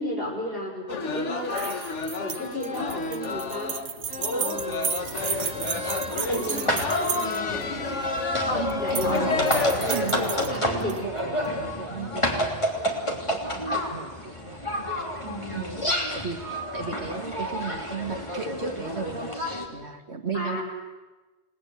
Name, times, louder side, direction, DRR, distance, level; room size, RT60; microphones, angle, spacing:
voice 1, 0.0-1.8 2.2-3.8 4.3-5.0 6.1-9.6 10.5-11.0 20.3-20.6, left 1 dB, 55° left, 0 dB, 6.3 m, -34 dB
sound 1, 0.9-10.6, left 3 dB, 85° left, 1.7 m, -30 dB
sound 2, 1.5-7.6 8.7-9.2 9.5-11.0, right 7 dB, 90° right, 1.3 m, -33 dB
sound 3, 5.0-19.7, equal, 25° left, 3.2 m, -30 dB
voice 2, 8.6-9.5 9.9-20.6, right 5 dB, 70° right, 6 dB, 1.9 m, -36 dB
29.0 x 19.5 x 8.1 m, 1.2 s
omnidirectional pair, 1.2 m